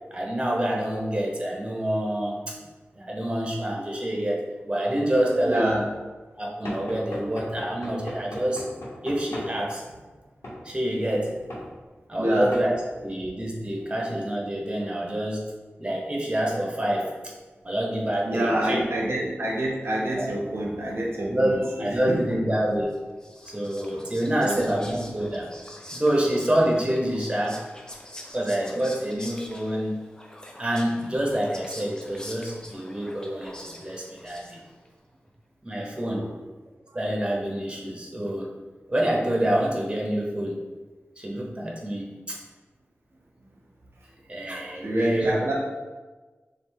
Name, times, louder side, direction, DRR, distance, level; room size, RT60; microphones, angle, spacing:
voice 1, 0.1-2.6 2.9-5.8 6.4-8.6 9.0-9.8 10.6-11.4 12.1-12.7 13.0-15.4 15.8-17.3 17.6-18.8 20.1-20.3 21.2-22.9 23.5-25.5 25.9-27.6 28.3-30.0 30.6-34.6 35.6-36.3 36.9-38.5 38.9-40.7 41.2-42.4 44.3-45.3, right 1 dB, 25° right, -2 dB, 0.9 m, -27 dB
voice 2, 5.5-5.9 12.2-12.5 18.2-22.2 23.9-24.0 24.4-24.8 36.1-36.3 44.8-45.5, right 1 dB, 70° right, -2 dB, 0.7 m, -27 dB
Knock / Wood, 6.7-9.5 10.4-10.6 11.5-11.7 12.5-12.7, left 1 dB, 80° left, 1.2 m, -37 dB
Whispering, 22.9-34.9, left 1 dB, 15° left, 0.6 m, -45 dB
3.4 x 2.5 x 4.5 m, 1.3 s
wide cardioid pair, 55°, 4 cm